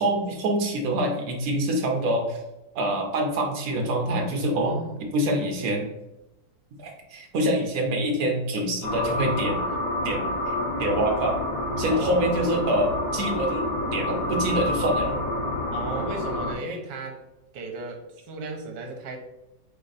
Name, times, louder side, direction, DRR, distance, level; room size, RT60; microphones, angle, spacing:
voice 1, 0.0-2.4 2.7-4.7 5.1-5.9 6.8-9.6 10.0-10.2 10.8-11.4 11.8-15.2, right 1 dB, 55° right, 2 dB, 1.2 m, -25 dB
voice 2, 4.5-5.0 9.6-9.8 10.1-10.2 11.9-12.3 15.7-17.2 17.5-19.2, right 3 dB, 75° right, 2 dB, 1.5 m, -35 dB
sound 1, 8.8-16.5, left 1 dB, 40° left, 0.8 m, -28 dB
3.8 x 3.5 x 4.0 m, 0.94 s
omnidirectional pair, 2.0 m